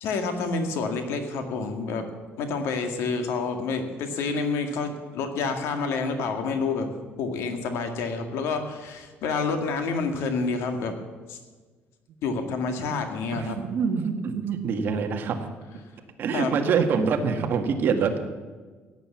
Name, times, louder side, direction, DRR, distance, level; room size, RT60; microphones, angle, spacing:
voice 1, 0.0-2.1 2.4-6.9 7.2-10.9 11.3-11.4 12.2-13.6 16.3-16.5, left 4 dB, 80° left, 6 dB, 2.1 m, -28 dB
voice 2, 13.3-15.5 16.2-18.2, right 6 dB, 50° right, 5 dB, 1.7 m, -25 dB
16.5 x 9.4 x 7.2 m, 1.4 s
cardioid pair, 155°, 4 cm